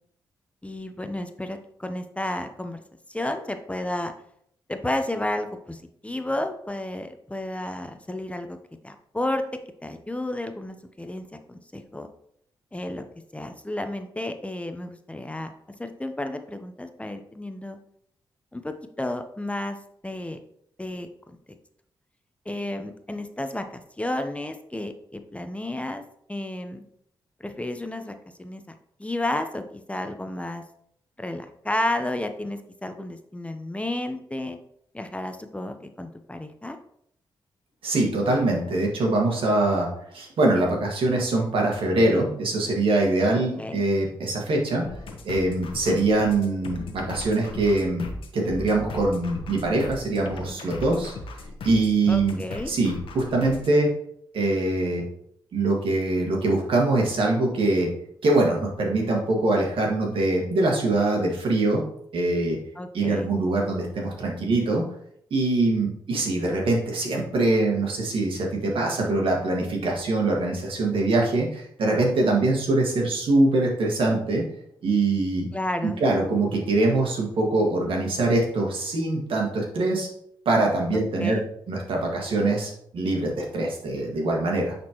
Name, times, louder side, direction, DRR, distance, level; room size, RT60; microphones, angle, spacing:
voice 1, 0.6-2.8 3.1-4.1 4.7-8.6 8.8-9.4 9.8-12.1 12.7-13.0 13.3-15.5 15.8-17.8 18.5-19.8 20.0-20.4 20.8-21.1 22.5-26.0 26.3-26.8 27.4-28.6 29.0-30.6 31.2-34.6 34.9-36.8 43.3-43.8 52.1-52.7 62.8-63.3 75.5-76.0 80.9-81.4, left 1 dB, 15° left, 7 dB, 0.7 m, -32 dB
voice 2, 37.8-39.9 40.1-44.9 45.2-48.1 48.3-51.1 51.6-53.9 54.3-55.0 55.5-57.9 58.2-61.8 62.1-62.6 62.9-64.8 65.3-74.4 74.8-75.5 76.0-80.1 80.5-81.4 81.7-84.7, right 2 dB, 75° right, 0 dB, 1.8 m, -23 dB
sound 1, 44.8-53.8, left 2 dB, 80° left, 1.1 m, -38 dB
9.4 x 4.3 x 3.0 m, 0.69 s
cardioid pair, 60°, 9 cm